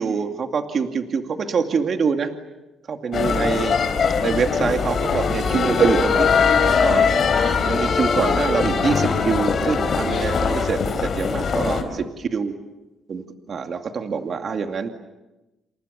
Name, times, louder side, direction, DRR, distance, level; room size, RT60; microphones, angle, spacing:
voice 1, 0.0-2.3 2.9-3.8 4.2-6.3 6.6-7.1 7.7-12.5 13.1-14.9, right 5 dB, 50° right, 5 dB, 2.4 m, -24 dB
sound 1, 3.1-11.8, left 5 dB, 50° left, 4.6 m, -21 dB
29.5 x 27.5 x 6.9 m, 1.0 s
cardioid pair, 90°, 0 cm